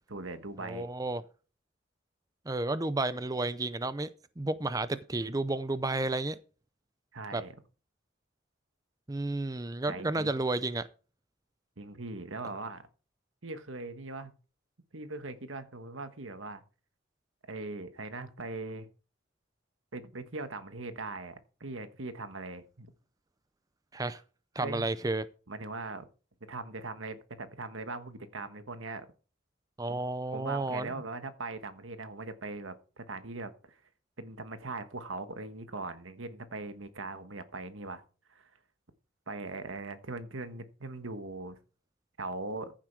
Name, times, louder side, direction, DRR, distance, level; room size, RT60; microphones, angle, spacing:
voice 1, 0.1-0.9 7.1-7.5 9.9-10.4 11.8-12.9 13.4-14.3 14.9-16.6 17.5-18.9 19.9-22.9 24.6-24.9 25.5-26.0 26.5-29.1 29.9-30.0 30.3-33.8 34.2-38.0 38.3-38.5 39.3-41.6 42.2-42.7, right 3 dB, 90° right, 1.5 m, -40 dB
voice 2, 0.6-1.2 2.5-4.1 4.4-6.4 7.3-7.4 9.1-10.9 23.9-24.2 24.6-25.3 29.8-30.9, right 2 dB, 20° right, 0.5 m, -32 dB
14.5 x 7.4 x 4.7 m
head